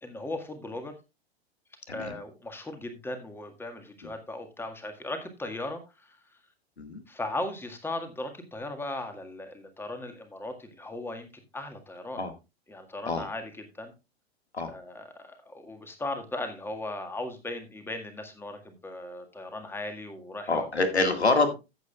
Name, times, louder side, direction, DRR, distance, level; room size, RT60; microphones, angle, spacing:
voice 1, 0.0-1.0 1.9-6.2 7.1-11.3 11.5-12.2 12.7-13.5 13.8-13.9 14.7-20.7, left 2 dB, 5° left, 6 dB, 1.8 m, -37 dB
voice 2, 1.9-2.2 4.0-4.1 6.8-7.0 12.2-12.3 13.1-13.3 14.5-14.7 20.5-21.6, left 3 dB, 80° left, 7 dB, 2.0 m, -26 dB
14.5 x 8.2 x 2.4 m, 0.26 s
figure-of-eight pair, 95°, 32 cm